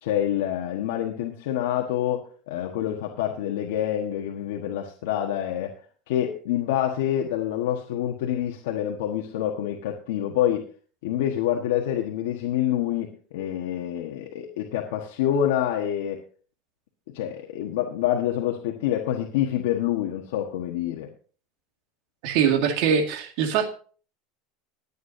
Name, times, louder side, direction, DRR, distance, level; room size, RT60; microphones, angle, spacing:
voice 1, 0.0-5.7 6.1-10.6 11.0-16.2 17.1-21.1, left 11 dB, 80° left, 1 dB, 1.4 m, -27 dB
voice 2, 22.2-23.7, right 7 dB, 60° right, 6 dB, 2.0 m, -22 dB
21.5 x 8.4 x 2.7 m, 0.40 s
supercardioid pair, 155°, 0 cm